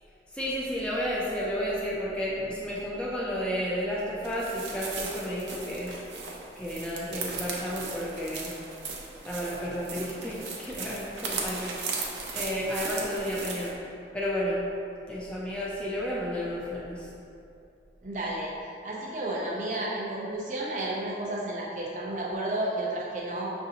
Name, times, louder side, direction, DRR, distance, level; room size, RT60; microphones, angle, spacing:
voice 1, 0.3-5.9 6.6-8.5 9.3-11.8 12.3-13.8 14.1-14.7 15.1-17.1, equal, 5° left, -6 dB, 0.4 m, -32 dB
sound 1, 4.2-13.7, right 4 dB, 80° right, 0.6 m, -37 dB
voice 2, 18.0-18.6 18.8-23.5, right 1 dB, 45° right, -5 dB, 0.7 m, -32 dB
5.9 x 2.6 x 2.8 m, 2.6 s
head